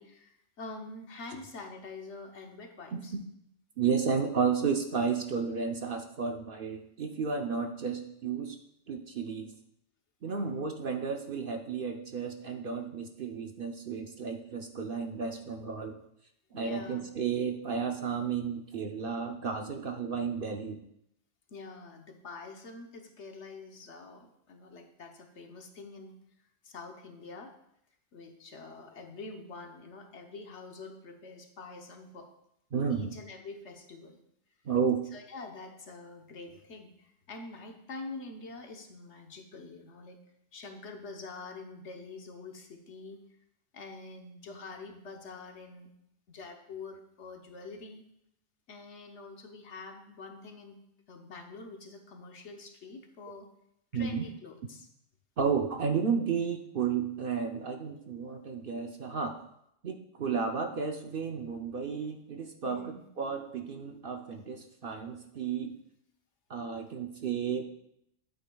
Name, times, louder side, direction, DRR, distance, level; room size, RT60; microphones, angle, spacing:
voice 1, 0.0-3.1 10.3-10.7 16.5-17.0 21.5-26.2 26.6-27.5 28.1-32.3 32.9-34.2 35.1-40.2 40.5-43.2 43.7-45.9 46.3-48.0 48.7-50.8 51.1-53.5 53.9-54.9 62.6-63.1 66.8-66.9, left 3 dB, 65° left, 4 dB, 1.2 m, -46 dB
voice 2, 2.9-3.2 3.8-8.6 8.9-9.5 10.2-16.0 16.5-20.8 32.7-33.1 34.6-35.0 53.9-54.3 55.4-59.4 59.8-65.7 66.5-67.6, right 6 dB, 55° right, 4 dB, 0.7 m, -32 dB
11.5 x 8.7 x 2.3 m, 0.77 s
omnidirectional pair, 1.3 m